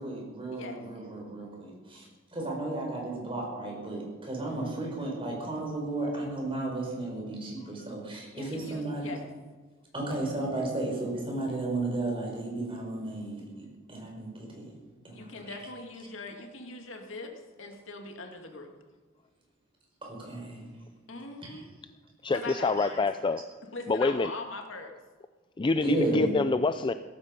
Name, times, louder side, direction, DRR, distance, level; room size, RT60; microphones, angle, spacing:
voice 1, 0.0-2.1 2.3-9.1 9.9-14.6 15.0-15.5 20.0-20.7 21.4-21.6 22.5-22.6 25.8-26.3, right 2 dB, 25° right, -1 dB, 5.2 m, -34 dB
voice 2, 4.5-4.8 8.3-9.3 15.1-17.3 17.6-18.7 21.1-21.7 22.3-23.0 23.7-24.9, left 3 dB, 70° left, 3 dB, 2.2 m, -41 dB
voice 3, 22.2-23.4 23.9-24.3 25.6-26.9, left 3 dB, 25° left, 11 dB, 0.4 m, -26 dB
16.5 x 14.5 x 5.3 m, 1.4 s
head